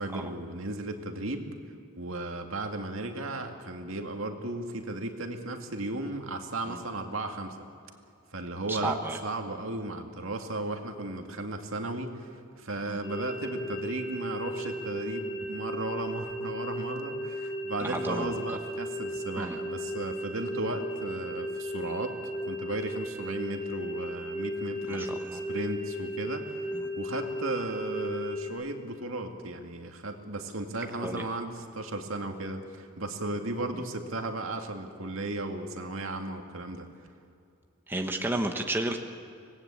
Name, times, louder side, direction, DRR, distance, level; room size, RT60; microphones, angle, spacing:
voice 1, 0.0-1.5 2.0-7.6 8.3-12.3 12.6-22.2 22.5-26.7 27.0-36.9, right 2 dB, 70° right, 4 dB, 2.2 m, -35 dB
voice 2, 8.7-9.2 12.9-13.0 17.8-18.4 19.4-19.6 24.9-25.4 31.0-31.2 37.9-39.0, right 1 dB, 10° right, 4 dB, 1.2 m, -32 dB
sound 1, 13.0-28.5, equal, 25° left, 3.3 m, -35 dB
25.0 x 19.0 x 8.7 m, 2.5 s
head